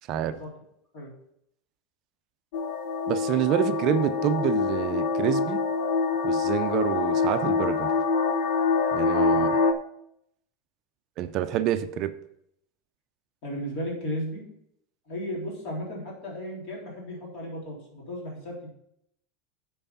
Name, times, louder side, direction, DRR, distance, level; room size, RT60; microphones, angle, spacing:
voice 1, 0.1-0.5 0.9-1.1 9.3-9.5 13.4-14.4 15.1-18.7, equal, 45° left, -3 dB, 3.6 m, -35 dB
sound 1, 2.5-9.7, left 4 dB, 65° left, 0.7 m, -25 dB
voice 2, 3.1-5.6 6.2-7.9 8.9-9.5 11.2-12.1, right 11 dB, 35° right, 10 dB, 0.5 m, -27 dB
8.8 x 4.7 x 5.9 m, 0.75 s
supercardioid pair, 165°, 0 cm